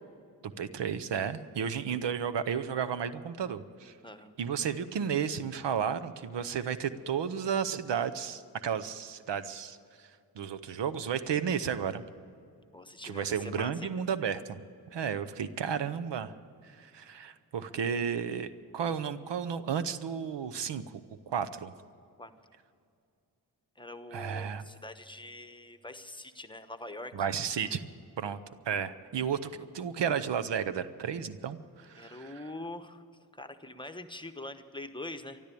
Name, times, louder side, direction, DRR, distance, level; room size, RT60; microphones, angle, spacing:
voice 1, 0.4-3.9 4.4-10.1 10.4-12.0 13.0-14.6 14.9-16.3 16.8-20.8 21.3-21.7 24.1-24.6 27.1-27.8 28.2-28.4 28.7-32.4, right 7 dB, 90° right, 13 dB, 0.8 m, -33 dB
voice 2, 12.7-13.9 22.2-22.3 23.8-27.1 32.0-33.0 33.3-35.4, left 2 dB, 10° left, 8 dB, 1.0 m, -43 dB
13.5 x 12.0 x 8.4 m, 2.4 s
cardioid pair, 70°, 41 cm